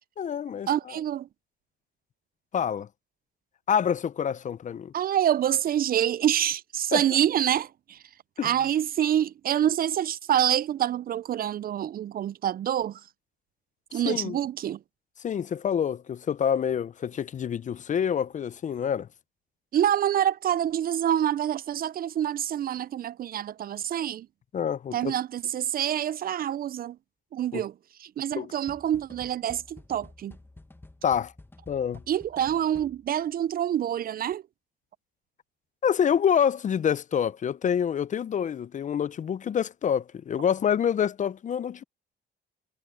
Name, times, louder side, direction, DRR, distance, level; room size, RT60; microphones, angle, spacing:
voice 1, 0.2-0.7 2.5-2.9 3.7-4.9 6.9-7.0 8.4-8.5 14.1-14.4 15.2-19.1 24.5-25.1 27.5-27.6 28.4-28.5 31.0-31.3 31.7-32.0 35.8-41.8, left 8 dB, 40° left, 0.4 m, -27 dB
voice 2, 0.7-1.3 4.9-8.0 8.4-13.0 13.9-14.8 19.7-24.3 24.9-27.0 27.3-27.7 28.0-30.4 32.1-34.4, right 10 dB, 50° right, 0.4 m, -26 dB
sound 1, 28.7-33.3, left 2 dB, 10° left, 1.2 m, -50 dB
cardioid pair, 90°, 20 cm